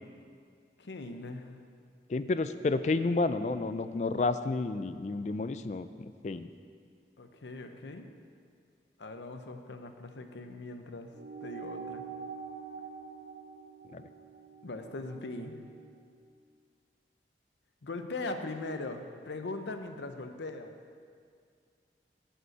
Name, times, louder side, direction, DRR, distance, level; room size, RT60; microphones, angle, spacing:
voice 1, 0.8-1.5 7.2-8.1 9.0-11.1 11.4-12.0 14.6-15.6 17.8-20.7, left 2 dB, 90° left, 7 dB, 0.7 m, -40 dB
voice 2, 2.1-6.5 13.9-14.0, left 3 dB, 40° left, 12 dB, 0.3 m, -31 dB
sound 1, 11.1-15.9, right 6 dB, 45° right, 1.4 m, -45 dB
9.8 x 5.4 x 7.9 m, 2.2 s
head